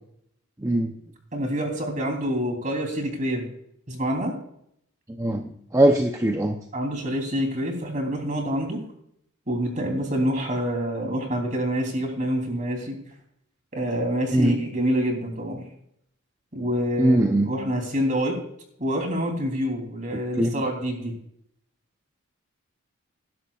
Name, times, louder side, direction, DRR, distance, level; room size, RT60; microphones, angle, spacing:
voice 1, 0.6-0.9 5.2-6.6 14.3-14.6 17.0-17.6 20.1-20.6, right 1 dB, 15° right, 4 dB, 0.6 m, -21 dB
voice 2, 1.3-3.5 3.9-4.3 6.7-8.8 9.5-13.0 13.7-15.7 16.5-17.2 17.5-18.4 18.8-21.1, equal, 35° right, 2 dB, 3.3 m, -27 dB
20.0 x 11.0 x 2.4 m, 0.72 s
head